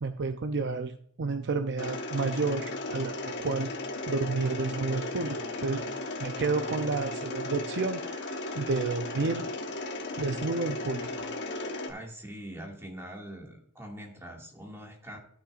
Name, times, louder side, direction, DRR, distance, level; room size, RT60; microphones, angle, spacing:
voice 1, 0.0-3.7 4.1-5.8 6.2-9.5 10.2-11.3, right 4 dB, 55° right, 7 dB, 0.6 m, -31 dB
Mechanisms, 1.8-11.9, left 2 dB, 55° left, 1.2 m, -36 dB
voice 2, 11.9-15.2, equal, 10° right, -1 dB, 2.1 m, -43 dB
14.5 x 6.4 x 2.5 m, 0.62 s
head